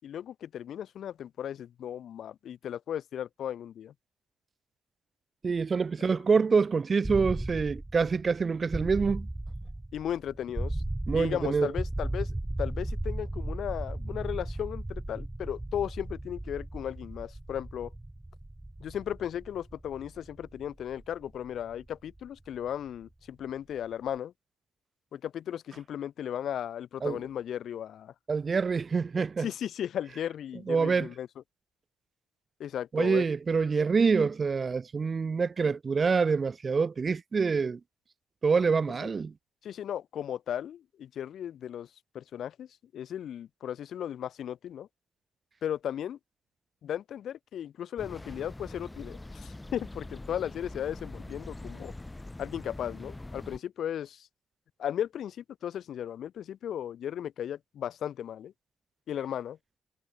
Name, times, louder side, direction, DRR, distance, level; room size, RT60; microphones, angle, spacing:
voice 1, 0.0-3.9 6.0-6.1 9.9-10.8 11.1-17.9 18.8-24.3 25.1-28.1 29.4-31.3 32.6-33.3 39.0-39.1 39.6-41.9 42.1-42.7 42.9-44.9 45.6-46.2 46.8-51.9 52.4-54.3 54.8-58.5 59.1-59.6, left 10 dB, 65° left, 4.0 m, -36 dB
voice 2, 5.4-9.3 11.1-11.7 27.0-27.2 28.3-29.5 30.7-31.1 32.9-37.8 38.4-39.3, right 5 dB, 35° right, 1.0 m, -26 dB
sound 1, 7.0-22.9, right 1 dB, 10° right, 3.0 m, -36 dB
sound 2, 48.0-53.6, left 2 dB, 15° left, 3.2 m, -43 dB
cardioid pair, 90°, 0 cm